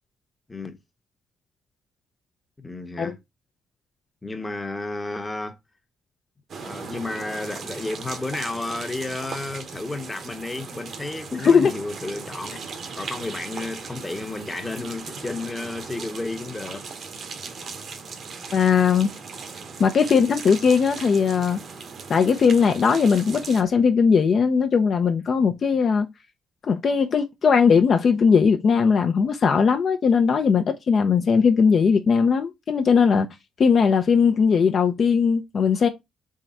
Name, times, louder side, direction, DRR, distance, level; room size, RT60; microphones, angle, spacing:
voice 1, 2.6-3.2 4.2-5.6 6.6-12.6 12.9-16.9, left 2 dB, 15° left, 0.9 m, -32 dB
sound 1, 6.5-23.6, right 5 dB, 55° right, 0.9 m, -38 dB
voice 2, 11.3-11.7 18.5-19.1 19.8-21.6 22.1-26.1 26.6-33.3 33.6-35.9, left 6 dB, 50° left, 0.6 m, -19 dB
3.7 x 3.3 x 4.1 m
cardioid pair, 90°, 0 cm